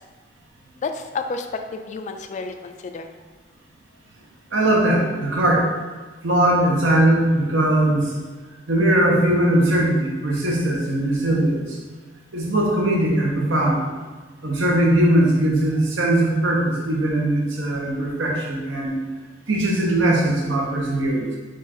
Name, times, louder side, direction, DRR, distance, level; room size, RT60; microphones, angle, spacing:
voice 1, 0.8-3.1, left 4 dB, 40° left, 7 dB, 0.3 m, -30 dB
voice 2, 4.5-5.7 6.2-8.2 8.7-11.8 12.3-13.8 14.4-19.0 19.5-21.4, right 1 dB, 75° right, -2 dB, 1.0 m, -20 dB
4.5 x 2.5 x 4.3 m, 1.3 s
head